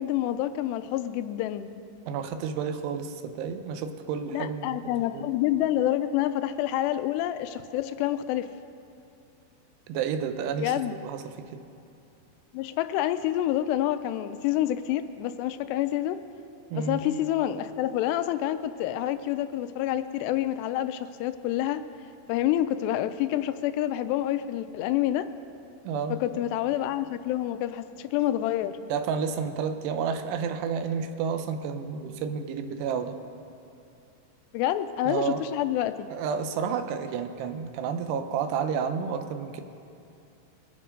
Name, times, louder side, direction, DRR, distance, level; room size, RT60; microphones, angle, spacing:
voice 1, 0.0-1.7 4.3-8.5 10.6-11.0 12.5-16.2 16.7-21.8 22.3-25.3 26.1-28.8 34.5-36.1, left 12 dB, 90° left, 11 dB, 2.8 m, -28 dB
voice 2, 2.1-5.3 9.9-11.6 16.7-17.0 25.9-26.2 28.9-33.2 35.1-35.4 36.1-39.6, right 6 dB, 85° right, 8 dB, 2.9 m, -31 dB
22.5 x 8.8 x 5.2 m, 2.6 s
omnidirectional pair, 4.8 m